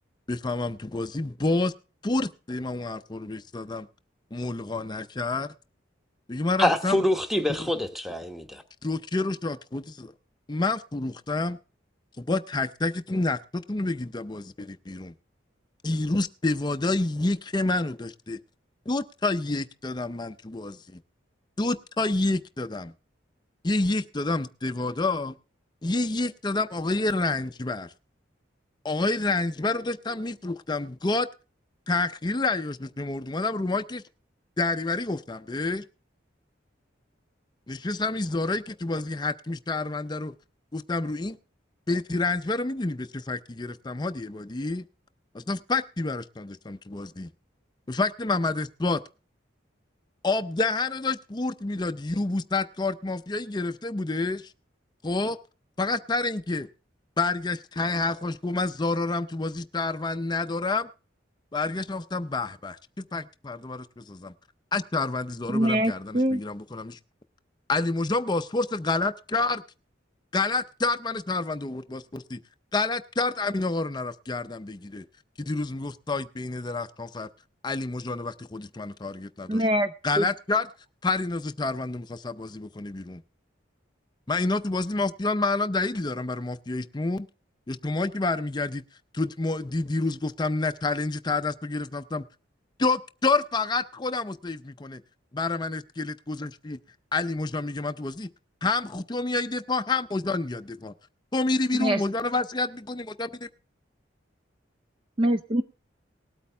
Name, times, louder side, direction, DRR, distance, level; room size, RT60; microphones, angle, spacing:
voice 1, 0.3-1.7 2.0-3.9 4.3-5.5 6.3-7.0 8.8-10.1 10.5-11.6 12.2-15.1 15.8-18.4 18.9-21.0 21.6-22.9 23.6-25.3 25.8-27.9 28.8-31.3 31.9-34.0 34.6-35.8 37.7-40.3 40.7-41.4 41.9-44.8 45.3-47.3 47.9-49.0 50.2-54.5 55.0-55.4 55.8-56.7 57.2-60.9 61.5-64.3 64.7-67.0 67.7-69.6 70.3-72.4 72.7-75.0 75.4-77.3 77.6-79.6 80.0-80.7 81.0-83.2 84.3-87.3 87.7-88.8 89.1-92.2 92.8-95.0 95.4-96.8 97.1-98.3 98.6-100.9 101.3-103.5, left 3 dB, 20° left, 0.5 m, -28 dB
voice 2, 6.6-8.6, left 1 dB, ahead, 1.1 m, -25 dB
voice 3, 65.5-66.4 79.5-79.9 80.2-80.3 101.8-102.0 105.2-105.6, equal, 25° right, 0.5 m, -23 dB
19.0 x 8.5 x 3.4 m
head